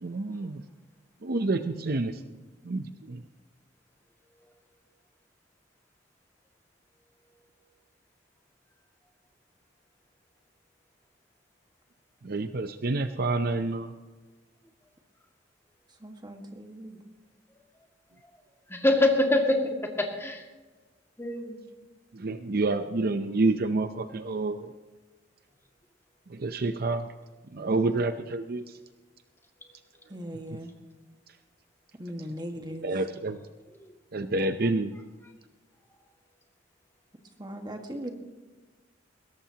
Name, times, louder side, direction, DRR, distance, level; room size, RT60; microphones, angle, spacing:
voice 1, 0.0-0.6 1.2-2.1 2.6-3.2 12.2-13.9 22.1-24.7 26.3-27.1 27.5-28.6 32.8-33.4 34.1-34.9, right 2 dB, 55° right, 9 dB, 0.7 m, -28 dB
voice 2, 16.0-17.0 30.1-30.7 32.0-32.9 37.4-38.1, equal, 25° right, 4 dB, 1.6 m, -39 dB
voice 3, 18.7-20.4 21.2-21.6 33.7-33.9, left 2 dB, 15° left, 1 dB, 2.1 m, -25 dB
21.0 x 17.0 x 2.9 m, 1.3 s
head